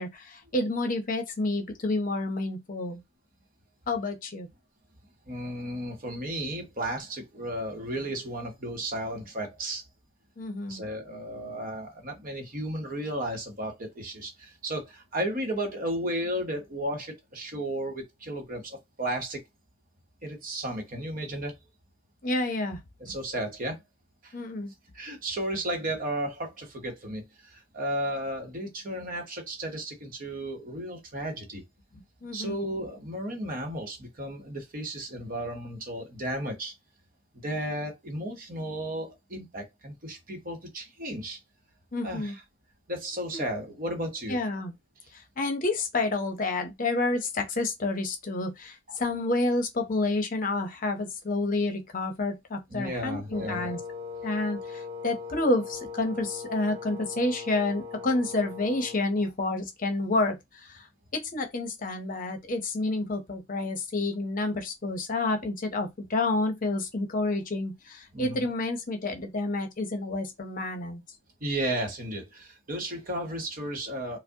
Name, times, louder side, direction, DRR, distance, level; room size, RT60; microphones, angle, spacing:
voice 1, 0.0-3.0 3.9-4.5 10.4-10.8 22.2-22.8 24.3-24.7 31.9-32.6 41.9-42.4 43.3-43.4 44.3-44.7 45.1-53.8 54.2-60.9 61.1-71.0, left 2 dB, 45° left, 0.7 m, -29 dB
voice 2, 5.3-9.8 10.7-19.4 20.2-21.6 23.0-23.8 24.2-24.4 24.9-31.6 32.3-36.7 37.4-41.4 42.0-42.4 42.9-44.4 48.9-49.0 52.7-53.8 68.1-68.5 71.4-74.2, right 1 dB, 45° right, 0.9 m, -34 dB
Wind instrument woodwind instrument, 53.3-59.1, left 5 dB, 25° right, 1.8 m, -39 dB
4.7 x 2.0 x 2.8 m
head